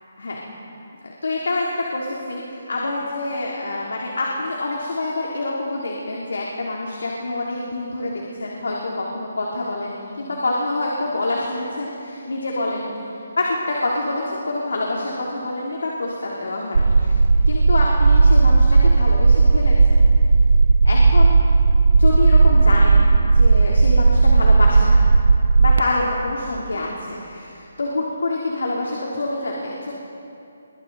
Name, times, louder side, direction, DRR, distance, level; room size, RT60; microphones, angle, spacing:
voice 1, 0.2-0.5 1.0-1.7 1.9-13.0 13.4-17.2 17.5-20.0 20.8-21.4 22.0-23.0 23.3-25.0 25.6-29.9, left 2 dB, 85° left, -3 dB, 3.5 m, -26 dB
sound 1, 16.7-25.8, right 4 dB, 85° right, 0.9 m, -14 dB
27.0 x 23.5 x 4.2 m, 2.7 s
hypercardioid pair, 180°, 0 cm